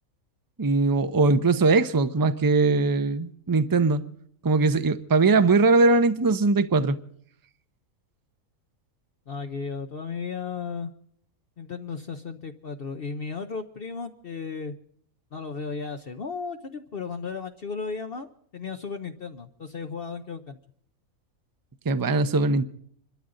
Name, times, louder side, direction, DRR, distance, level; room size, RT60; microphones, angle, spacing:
voice 1, 0.6-4.0 4.4-7.0 21.9-22.7, right 3 dB, 25° right, 0.5 m, -21 dB
voice 2, 9.3-10.9 11.6-14.7 15.3-18.3 18.5-20.6, left 5 dB, 50° left, 0.9 m, -35 dB
26.5 x 13.0 x 3.8 m
omnidirectional pair, 1.4 m